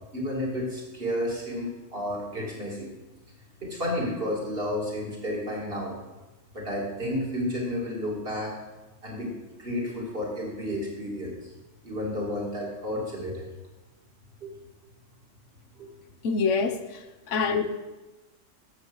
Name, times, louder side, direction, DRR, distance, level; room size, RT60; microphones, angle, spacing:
voice 1, 0.1-2.9 3.6-6.0 6.5-8.5 9.0-9.3 9.6-11.5 11.8-13.5 14.4-14.5 15.8-15.9 17.5-17.6, left 1 dB, 50° right, 2.9 m, -31 dB
voice 2, 16.2-17.6, left 5 dB, 75° left, 1.2 m, -26 dB
11.0 x 7.3 x 6.3 m
omnidirectional pair, 1.3 m